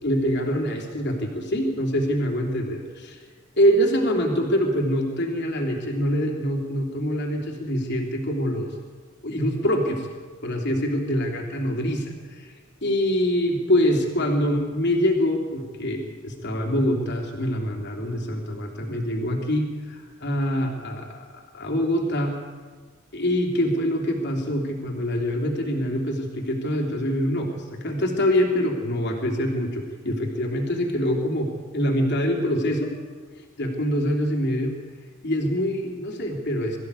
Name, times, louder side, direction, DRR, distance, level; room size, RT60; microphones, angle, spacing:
voice 1, 0.0-3.2 3.6-8.7 9.2-10.1 10.4-12.5 12.8-22.4 23.1-32.9 33.6-34.7 35.2-36.8, equal, 55° left, 1 dB, 3.3 m, -25 dB
22.5 x 14.5 x 8.5 m, 1.5 s
head